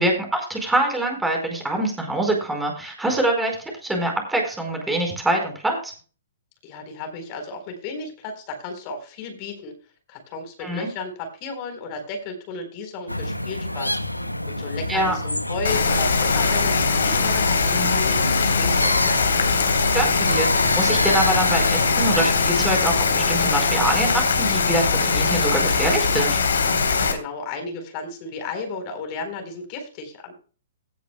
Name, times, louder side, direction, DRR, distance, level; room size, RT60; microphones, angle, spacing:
voice 1, 0.0-5.9 10.6-10.9 14.9-15.2 19.9-26.4, right 1 dB, 5° right, 2 dB, 4.6 m, -24 dB
voice 2, 6.6-9.7 10.1-14.0 14.4-16.8 17.0-18.9 26.9-30.3, left 3 dB, 35° left, 5 dB, 4.2 m, -34 dB
sound 1, 13.1-22.3, left 1 dB, 90° left, 1.0 m, -27 dB
Rain, 15.6-27.1, left 4 dB, 65° left, 3.6 m, -21 dB
17.0 x 10.0 x 2.3 m, 0.36 s
figure-of-eight pair, 115°, 0 cm